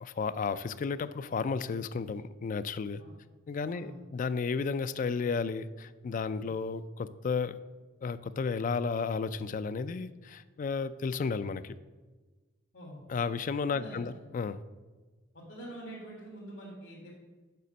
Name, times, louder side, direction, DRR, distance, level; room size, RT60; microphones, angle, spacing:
voice 1, 0.0-3.0 3.5-7.6 8.0-11.7 13.1-14.6, left 5 dB, 45° left, 14 dB, 0.3 m, -33 dB
voice 2, 3.7-4.0 6.4-6.5 12.7-13.1 13.7-14.2 15.3-17.1, right 1 dB, 70° left, -5 dB, 1.8 m, -45 dB
6.8 x 5.1 x 6.3 m, 1.3 s
head